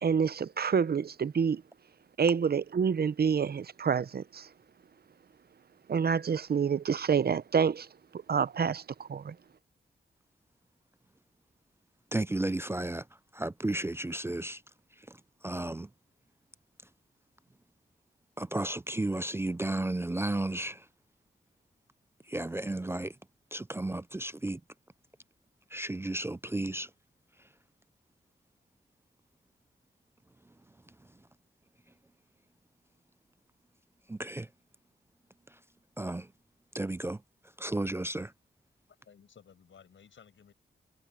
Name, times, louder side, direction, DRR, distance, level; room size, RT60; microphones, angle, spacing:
voice 1, 0.0-1.6 2.2-4.5 5.9-7.9 8.1-9.4, right 6 dB, 55° right, 0.6 m, -28 dB
voice 2, 12.1-13.1 13.3-14.6 15.0-15.9 18.4-20.9 22.3-23.2 23.5-24.6 25.7-26.9 34.1-34.5 35.5-35.6 36.0-36.3 36.7-37.2 37.6-38.3, right 2 dB, 15° right, 0.3 m, -33 dB
voice 3, 38.9-40.5, left 7 dB, 90° left, 5.9 m, -57 dB
wide cardioid pair, 100°, 19 cm